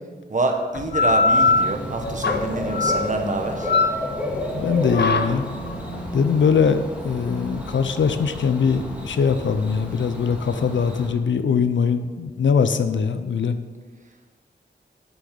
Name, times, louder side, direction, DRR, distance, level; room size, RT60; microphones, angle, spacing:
voice 1, 0.3-3.7, right 2 dB, 40° right, 3 dB, 1.4 m, -26 dB
sound 1, 0.7-9.9, left 3 dB, 65° left, 0.9 m, -24 dB
Bird / Cricket, 1.3-11.1, left 1 dB, 5° right, 2.0 m, -32 dB
voice 2, 4.5-5.5 6.1-13.6, left 6 dB, 90° left, 10 dB, 0.6 m, -21 dB
8.2 x 6.2 x 6.9 m, 1.4 s
wide cardioid pair, 95°, 19 cm